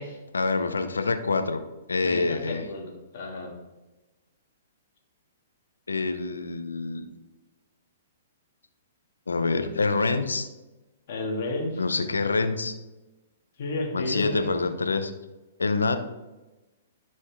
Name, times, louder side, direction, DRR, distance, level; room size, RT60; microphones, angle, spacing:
voice 1, 0.3-1.6 1.9-2.6 5.9-7.1 9.3-10.5 11.8-12.7 13.9-15.1 15.6-16.0, left 3 dB, 85° left, 9 dB, 0.8 m, -26 dB
voice 2, 2.0-3.6 11.1-11.8 13.6-14.6, left 2 dB, 55° left, 0 dB, 2.5 m, -32 dB
11.5 x 5.3 x 3.6 m, 1.1 s
hypercardioid pair, 125°, 0 cm